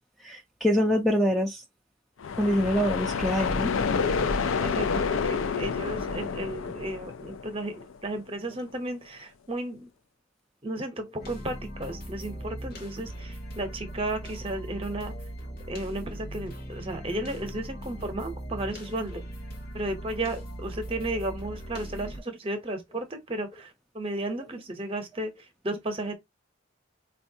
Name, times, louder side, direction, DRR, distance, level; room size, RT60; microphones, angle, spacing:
voice 1, 0.2-1.6 2.4-3.7, equal, ahead, 0.3 m, -25 dB
sound 1, 2.2-8.0, left 5 dB, 75° left, 0.4 m, -29 dB
voice 2, 4.6-7.7 8.0-9.8 10.6-15.1 15.7-19.2 19.7-25.3 25.6-26.1, right 1 dB, 25° right, 0.7 m, -34 dB
sound 2, 11.2-22.2, equal, 45° left, 0.9 m, -39 dB
4.3 x 2.3 x 2.7 m
head